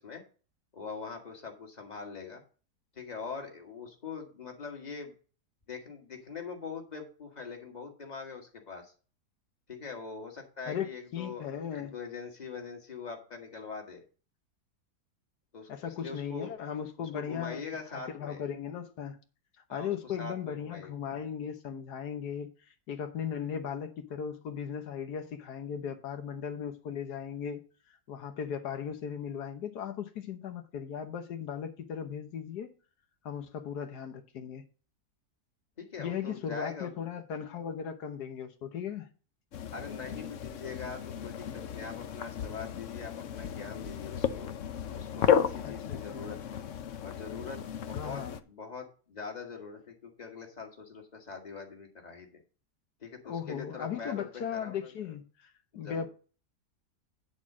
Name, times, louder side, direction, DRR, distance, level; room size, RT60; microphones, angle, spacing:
voice 1, 0.7-2.4 2.9-5.1 5.7-8.9 9.7-14.0 15.5-16.5 17.0-18.4 19.7-20.9 35.8-36.9 39.7-44.5 44.9-46.6 47.0-52.3 53.0-54.9 55.7-56.1, left 5 dB, 25° left, 2.0 m, -43 dB
voice 2, 11.1-11.9 15.7-17.6 17.9-19.2 19.7-27.6 27.9-32.7 33.2-34.6 36.0-39.1 45.6-46.3 47.9-48.4 53.2-56.1, left 8 dB, 85° left, 1.6 m, -37 dB
sound 1, 39.5-48.4, left 8 dB, 60° left, 1.0 m, -34 dB
9.6 x 4.3 x 7.3 m
omnidirectional pair, 1.7 m